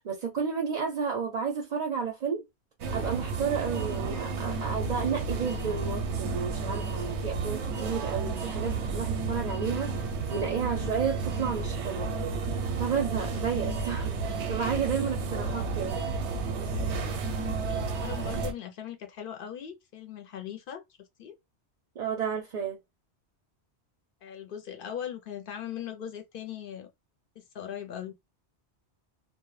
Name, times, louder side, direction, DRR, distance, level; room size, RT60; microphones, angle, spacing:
voice 1, 0.0-2.4 2.9-10.0 10.3-12.1 12.8-16.0 22.0-22.8, right 6 dB, 50° right, 0.5 m, -32 dB
sound 1, 2.8-18.5, right 4 dB, 85° right, 0.9 m, -32 dB
voice 2, 17.7-21.4 24.2-26.9 27.4-28.2, left 9 dB, 60° left, 0.7 m, -39 dB
2.1 x 2.1 x 3.0 m
omnidirectional pair, 1.1 m